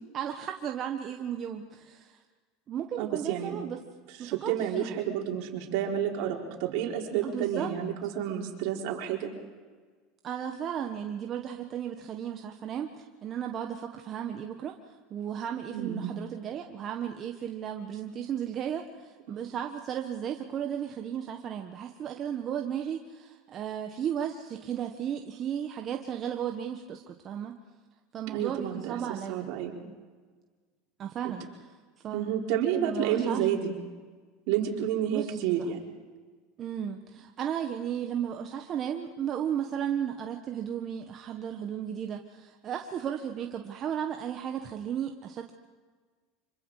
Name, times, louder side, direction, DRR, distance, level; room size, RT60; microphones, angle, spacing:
voice 1, 0.1-2.2 2.7-3.8 4.2-5.0 7.2-7.7 10.2-27.6 28.1-29.5 31.0-31.5 32.0-32.3 32.8-33.5 35.1-35.6 36.6-45.5, right 9 dB, 40° right, 4 dB, 1.5 m, -35 dB
voice 2, 3.0-3.6 4.2-9.3 15.7-16.2 19.3-19.4 28.3-29.8 32.1-33.7 34.5-35.8, right 9 dB, 70° right, 0 dB, 4.4 m, -30 dB
26.0 x 24.5 x 5.0 m, 1.5 s
supercardioid pair, 110°, 0 cm